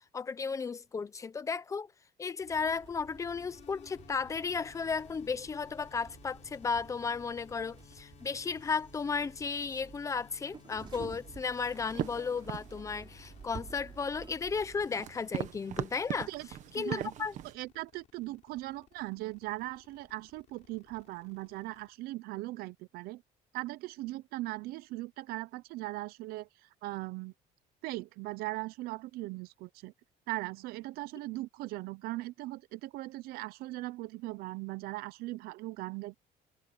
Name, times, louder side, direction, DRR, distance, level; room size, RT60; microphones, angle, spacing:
voice 1, 0.1-1.9 2.2-16.3 16.7-17.3, left 5 dB, 20° left, 0.9 m, -34 dB
sound 1, 2.4-21.9, left 11 dB, 50° left, 3.8 m, -59 dB
sound 2, 2.5-14.9, right 6 dB, 30° right, 4.0 m, -52 dB
sound 3, 11.6-17.5, right 11 dB, 50° right, 1.3 m, -41 dB
voice 2, 16.7-17.1 17.4-23.2 23.5-27.3 27.8-29.9 30.3-36.2, right 19 dB, 75° right, 0.7 m, -39 dB
cardioid pair, 155°, 16 cm